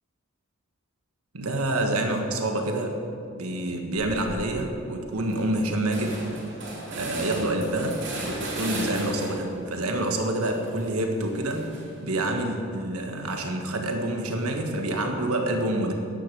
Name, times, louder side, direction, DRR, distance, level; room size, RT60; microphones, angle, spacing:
voice 1, 1.3-3.0 3.3-6.3 6.9-15.9, right 1 dB, 90° right, 3 dB, 1.5 m, -27 dB
sound 1, 4.0-4.4 4.8-4.9 5.2-9.6 10.0-12.1, right 2 dB, 55° right, 2.8 m, -36 dB
10.5 x 9.5 x 7.6 m, 2.4 s
head